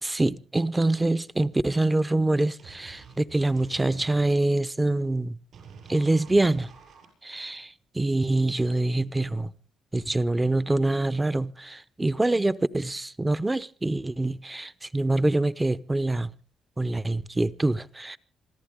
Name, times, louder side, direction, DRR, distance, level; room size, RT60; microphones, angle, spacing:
voice 1, 0.0-5.4 5.9-6.7 7.2-9.5 9.9-16.3 16.8-18.2, right 2 dB, 15° right, 0.8 m, -25 dB
sound 1, 2.6-4.3 5.5-7.1, right 6 dB, 65° right, 7.3 m, -48 dB
27.0 x 14.0 x 3.6 m
cardioid pair, 90°, 0 cm